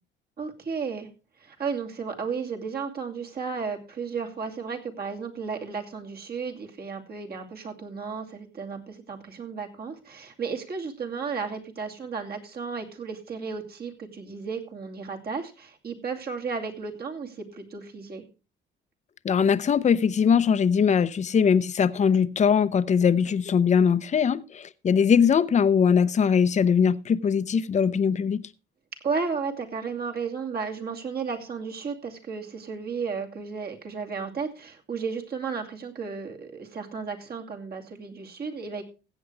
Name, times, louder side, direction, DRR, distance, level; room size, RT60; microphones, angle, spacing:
voice 1, 0.4-1.1 1.4-18.2 29.0-38.8, right 5 dB, 50° right, 2.6 m, -33 dB
voice 2, 19.2-28.4, left 7 dB, 35° left, 0.6 m, -21 dB
15.5 x 8.3 x 3.3 m
cardioid pair, 90°, 20 cm